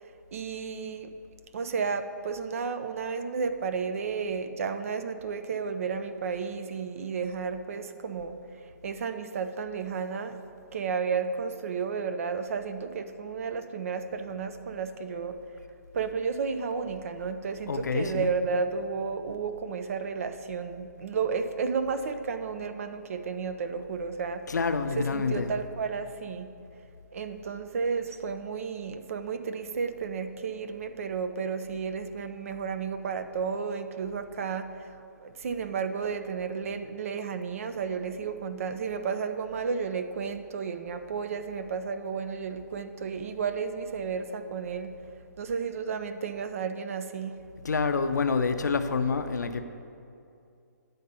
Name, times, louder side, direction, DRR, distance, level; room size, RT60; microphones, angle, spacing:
voice 1, 0.3-1.1 1.5-8.4 8.8-10.4 10.7-15.4 15.9-24.4 25.0-26.5 27.1-47.4, right 5 dB, 50° right, 9 dB, 0.6 m, -32 dB
voice 2, 17.7-18.3 24.5-25.5 47.6-49.6, left 5 dB, 70° left, 8 dB, 0.6 m, -27 dB
9.9 x 4.0 x 6.8 m, 2.5 s
figure-of-eight pair, 140°, 10 cm